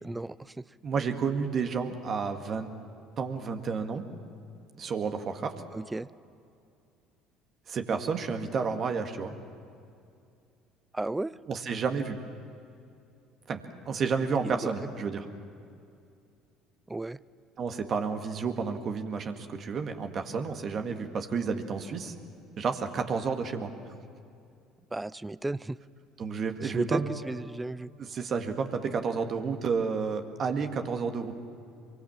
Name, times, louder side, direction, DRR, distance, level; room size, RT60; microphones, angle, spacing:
voice 1, 0.0-0.6 5.7-6.1 10.9-11.4 14.4-14.7 16.9-17.2 24.9-25.8 26.6-27.9, right 2 dB, 15° right, 20 dB, 0.5 m, -34 dB
voice 2, 0.8-2.7 3.2-4.0 4.8-5.5 7.7-9.3 11.5-12.2 13.5-13.6 13.9-15.3 17.6-22.1 22.6-24.0 26.2-27.1 28.0-31.3, right 5 dB, 45° right, 5 dB, 1.9 m, -31 dB
24.5 x 23.5 x 7.5 m, 2.5 s
hypercardioid pair, 60°, 0 cm